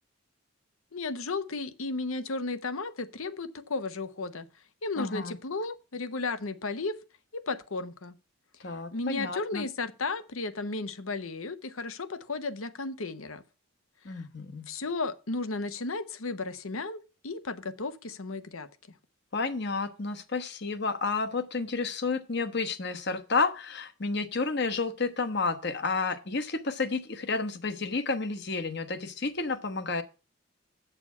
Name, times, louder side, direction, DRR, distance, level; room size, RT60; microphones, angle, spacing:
voice 1, 0.9-4.5 4.8-7.0 7.3-8.2 8.9-13.4 14.1-14.2 14.7-18.7, left 3 dB, 80° left, 0.9 m, -34 dB
voice 2, 5.0-5.3 8.6-9.6 14.0-14.7 19.3-30.0, left 4 dB, 55° left, 1.1 m, -31 dB
8.4 x 6.9 x 5.5 m
head